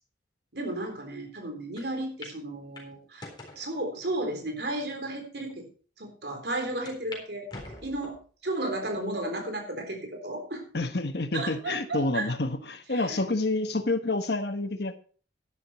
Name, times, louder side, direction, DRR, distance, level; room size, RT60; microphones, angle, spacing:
voice 1, 0.5-3.3 3.6-5.7 6.0-7.5 7.8-8.2 8.4-10.6 11.3-12.3 12.9-13.2, right 1 dB, 65° right, 4 dB, 3.7 m, -33 dB
sound 1, 1.8-1.9 2.2-2.4 2.8-3.6 4.3-4.4 5.1-5.2 5.5-5.6 6.9-7.2 7.5-8.3 8.8-9.3 9.8-9.9 11.0-11.5, left 2 dB, 25° left, 3.9 m, -44 dB
voice 2, 10.7-15.0, left 2 dB, 65° left, 9 dB, 1.2 m, -28 dB
11.5 x 11.0 x 4.3 m, 0.41 s
head